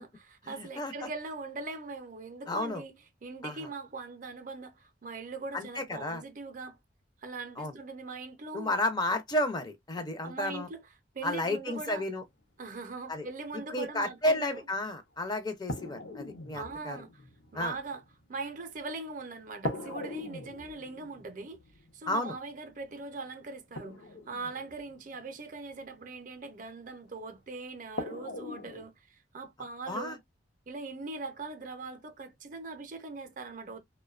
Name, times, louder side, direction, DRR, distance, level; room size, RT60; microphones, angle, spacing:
voice 1, 0.0-3.0 3.2-6.8 7.2-8.8 10.2-10.8 11.1-12.1 12.6-14.7 16.5-17.2 17.5-18.0 18.3-21.6 21.9-30.2 30.7-33.8, right 3 dB, 45° right, 0.5 m, -41 dB
voice 2, 0.6-1.1 2.5-2.8 3.4-3.6 5.5-6.2 7.6-7.7 8.5-10.7 11.2-12.2 13.1-13.3 13.7-17.0 17.5-17.7 22.1-22.3 29.9-30.1, left 1 dB, 20° left, 0.4 m, -32 dB
sound 1, 14.8-14.9 15.7-19.1 19.7-25.8 27.1-27.2 28.0-28.9, left 1 dB, 80° left, 0.7 m, -41 dB
2.6 x 2.1 x 2.3 m
head